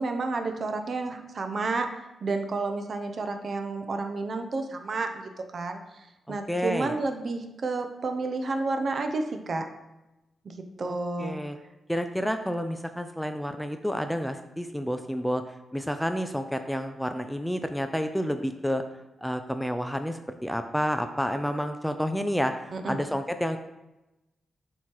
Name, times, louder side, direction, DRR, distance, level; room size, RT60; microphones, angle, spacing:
voice 1, 0.0-1.9 2.2-5.8 6.3-9.6 10.4-11.4 22.7-23.0, right 3 dB, 50° right, 6 dB, 0.7 m, -30 dB
voice 2, 6.3-6.9 10.8-11.6 11.9-15.4 15.7-18.8 19.2-23.6, equal, ahead, 7 dB, 0.4 m, -30 dB
7.7 x 3.0 x 4.6 m, 0.99 s
cardioid pair, 105°, 0 cm